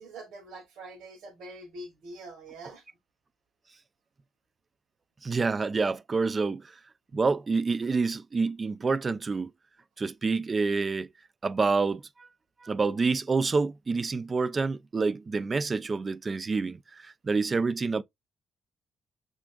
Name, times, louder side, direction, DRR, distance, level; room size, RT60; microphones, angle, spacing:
voice 1, 0.0-2.8, right 2 dB, 85° right, 1.2 m, -44 dB
voice 2, 5.2-6.7 7.1-9.5 10.0-11.1 11.4-12.3 12.6-18.0, right 4 dB, 35° right, 0.3 m, -28 dB
6.0 x 2.5 x 2.2 m
cardioid pair, 90°, 0 cm